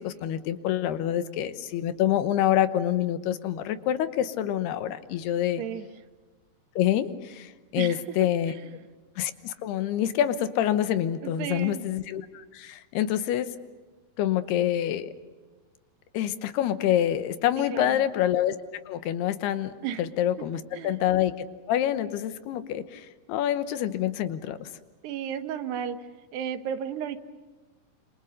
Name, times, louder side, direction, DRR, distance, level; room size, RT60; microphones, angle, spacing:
voice 1, 0.0-5.6 6.8-8.5 9.2-13.5 14.2-15.1 16.1-18.6 18.9-19.7 20.0-24.7, left 11 dB, 80° left, 11 dB, 3.1 m, -27 dB
voice 2, 11.2-11.8 17.7-18.0 19.8-20.0 20.7-21.0 25.0-26.0 26.3-27.2, right 9 dB, 85° right, 9 dB, 3.4 m, -33 dB
28.0 x 27.0 x 6.7 m, 1.3 s
omnidirectional pair, 4.6 m